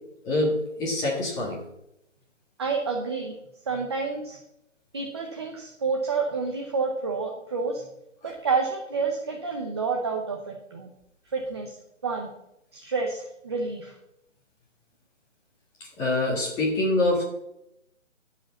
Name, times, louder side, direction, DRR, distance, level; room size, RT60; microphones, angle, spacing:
voice 1, 0.2-1.6 16.0-17.2, left 2 dB, 10° left, -3 dB, 1.7 m, -25 dB
voice 2, 2.6-3.3 3.7-4.4 4.9-7.8 8.2-10.9 11.3-11.8 12.0-12.3 12.7-13.9, right 4 dB, 20° right, 1 dB, 0.8 m, -29 dB
11.5 x 5.1 x 7.0 m, 0.83 s
hypercardioid pair, 165°, 38 cm